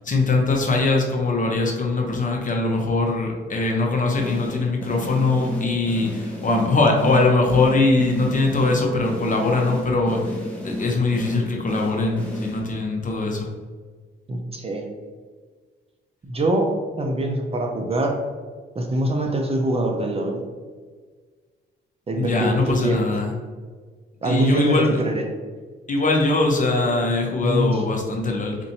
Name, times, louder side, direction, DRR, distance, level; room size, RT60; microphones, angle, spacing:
voice 1, 0.0-10.2 10.6-13.5 22.2-23.3 24.2-25.0 25.9-28.6, left 3 dB, 40° left, 1 dB, 0.8 m, -21 dB
sound 1, 4.2-13.0, left 1 dB, 5° left, 0.8 m, -33 dB
voice 2, 14.3-14.9 16.3-16.7 17.0-18.2 18.8-20.4 22.1-23.2 24.2-25.2 27.4-27.7, right 1 dB, 30° right, 2 dB, 0.6 m, -23 dB
4.3 x 2.6 x 2.7 m, 1.5 s
cardioid pair, 85°, 20 cm